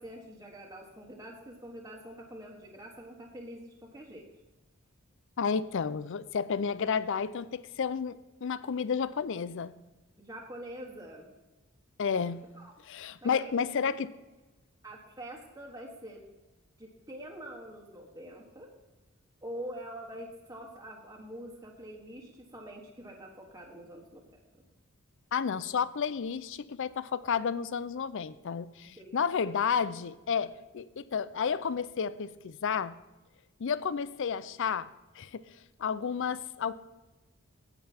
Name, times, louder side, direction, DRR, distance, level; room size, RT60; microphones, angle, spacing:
voice 1, 0.0-4.2 10.2-11.3 12.2-12.7 13.2-13.7 14.8-16.2 16.8-18.7 19.4-24.4 28.8-29.5, right 1 dB, 15° right, -2 dB, 1.3 m, -45 dB
voice 2, 5.4-9.7 12.0-12.4 12.9-14.1 25.3-32.9 33.6-34.9 35.2-35.4 35.8-36.7, left 6 dB, 60° left, 16 dB, 0.4 m, -31 dB
9.1 x 8.6 x 4.3 m, 1.1 s
head